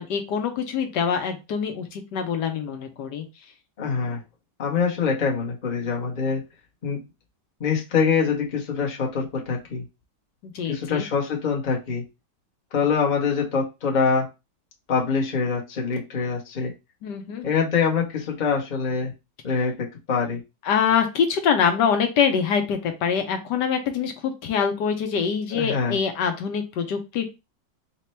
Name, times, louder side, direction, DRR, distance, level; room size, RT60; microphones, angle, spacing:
voice 1, 0.0-3.3 10.4-11.0 17.0-17.4 20.6-27.2, left 7 dB, 75° left, 6 dB, 1.3 m, -24 dB
voice 2, 3.8-4.2 4.6-6.4 6.8-7.0 7.6-9.8 10.7-12.0 12.7-14.3 14.9-16.7 17.4-19.1 19.4-19.7 20.1-20.4 25.5-26.0, left 5 dB, 35° left, -1 dB, 0.8 m, -24 dB
4.1 x 2.2 x 4.2 m, 0.25 s
omnidirectional pair, 1.9 m